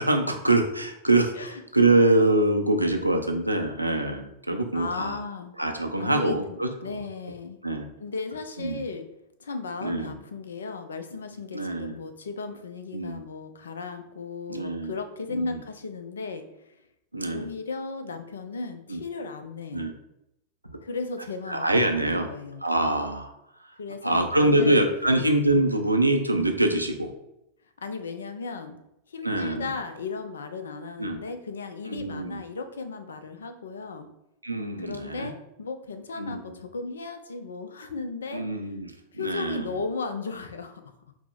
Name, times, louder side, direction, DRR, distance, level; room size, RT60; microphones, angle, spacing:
voice 1, 0.0-5.2 5.6-7.0 7.6-7.9 8.6-8.8 9.8-10.2 11.5-12.0 12.9-13.2 14.5-14.9 15.3-15.6 17.1-17.5 18.9-19.0 19.7-19.9 20.7-20.8 21.5-22.3 22.6-23.3 24.0-27.1 29.2-29.7 31.0-31.2 31.9-32.4 34.4-35.3 36.2-36.4 38.3-39.7, right 2 dB, 85° right, 5 dB, 0.4 m, -24 dB
voice 2, 4.7-5.5 6.0-7.6 8.0-9.1 9.4-16.8 17.3-19.9 20.8-22.6 23.8-24.8 27.8-28.8 29.1-34.1 34.8-38.5 39.1-40.8, left 4 dB, 70° left, 8 dB, 0.4 m, -36 dB
4.6 x 2.1 x 3.8 m, 0.83 s
figure-of-eight pair, 90°, 0 cm